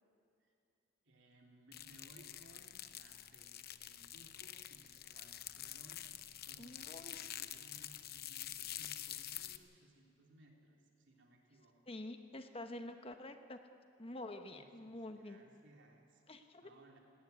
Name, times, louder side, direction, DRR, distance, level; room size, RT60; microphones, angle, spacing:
voice 1, 1.1-6.1 6.4-11.8 14.5-16.2 16.6-17.0, right 1 dB, 65° right, 0 dB, 3.5 m, -63 dB
sound 1, 1.7-9.6, left 12 dB, 55° left, 0.8 m, -47 dB
voice 2, 6.6-7.5 11.9-13.6 14.0-15.4 16.3-16.7, left 1 dB, 30° left, 7 dB, 1.0 m, -48 dB
19.0 x 18.0 x 9.6 m, 2.6 s
head